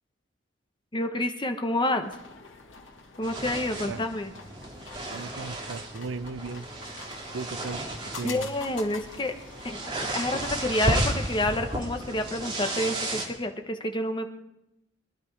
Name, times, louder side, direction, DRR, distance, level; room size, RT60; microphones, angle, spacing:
voice 1, 0.9-2.1 3.2-4.3 8.2-9.3 9.6-14.3, left 1 dB, 25° left, 6 dB, 1.1 m, -29 dB
sound 1, 2.0-12.3, left 4 dB, 80° left, 2.3 m, -46 dB
sound 2, 3.2-13.2, right 1 dB, 25° right, 2.3 m, -33 dB
voice 2, 5.1-6.7 7.3-7.9 8.2-8.5, right 4 dB, 80° right, 16 dB, 0.5 m, -36 dB
22.5 x 11.0 x 4.8 m, 0.89 s
head